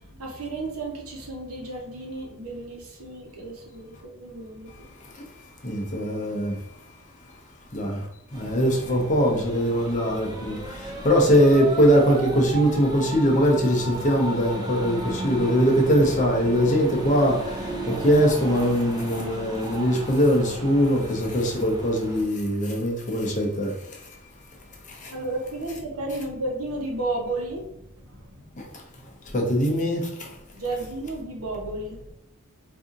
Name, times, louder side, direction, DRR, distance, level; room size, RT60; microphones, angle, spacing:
voice 1, 0.1-4.9 25.1-28.7 30.5-32.1, right 2 dB, 75° right, 1.0 m, -33 dB
voice 2, 5.6-6.6 7.7-8.0 8.3-23.7 24.9-25.1 28.6-28.7 29.3-30.3, equal, 35° left, 0.7 m, -22 dB
sound 1, 8.3-22.2, right 2 dB, 20° right, 0.5 m, -35 dB
4.1 x 2.6 x 2.5 m
head